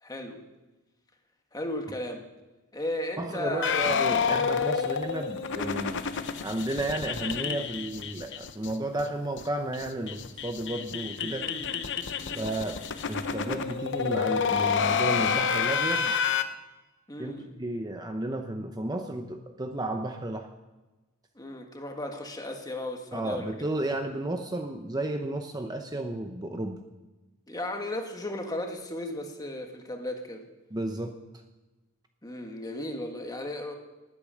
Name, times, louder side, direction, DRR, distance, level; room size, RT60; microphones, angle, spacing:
voice 1, 0.0-0.4 1.5-2.2 2.7-3.8 4.5-4.7 11.2-11.9 12.2-12.6 17.1-17.5 21.3-23.5 27.5-30.4 32.2-33.8, left 1 dB, 20° left, 3 dB, 1.6 m, -35 dB
voice 2, 3.2-6.0 6.4-11.5 12.4-12.8 13.1-16.1 17.2-20.5 23.1-26.8 30.7-31.2, right 1 dB, 20° right, 5 dB, 0.7 m, -33 dB
sound 1, 3.6-8.7 9.0-9.1 9.4-9.5 9.7-16.4, left 6 dB, 60° left, 0.8 m, -29 dB
19.0 x 8.4 x 6.3 m, 1.1 s
head